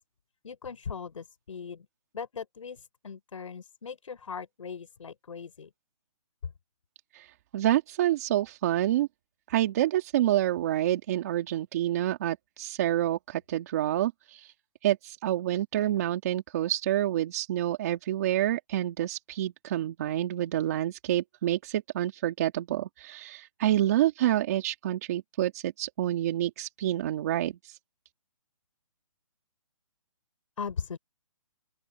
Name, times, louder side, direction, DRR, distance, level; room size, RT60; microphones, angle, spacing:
voice 1, 0.4-1.9 2.1-5.7 30.6-31.0, left 6 dB, 65° left, 6.0 m, -39 dB
voice 2, 7.1-9.1 9.5-14.5 14.8-27.8, right 13 dB, 30° right, 2.1 m, -28 dB
open air
hypercardioid pair, 170°, 18 cm